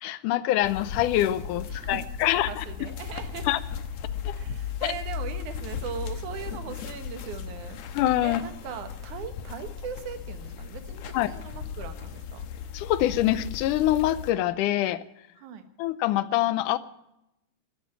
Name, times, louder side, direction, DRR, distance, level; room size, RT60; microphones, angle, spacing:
voice 1, 0.0-2.7 3.5-3.6 4.3-4.4 4.8-4.9 7.9-8.4 11.1-11.3 12.7-15.0 15.8-16.8, left 14 dB, 90° left, 15 dB, 2.3 m, -25 dB
sound 1, 0.6-14.3, left 7 dB, 65° left, 2.2 m, -36 dB
voice 2, 1.7-3.5 4.4-7.8 8.2-12.5 15.4-15.6, right 7 dB, 75° right, 8 dB, 2.8 m, -39 dB
13.0 x 11.0 x 8.7 m, 0.86 s
omnidirectional pair, 3.6 m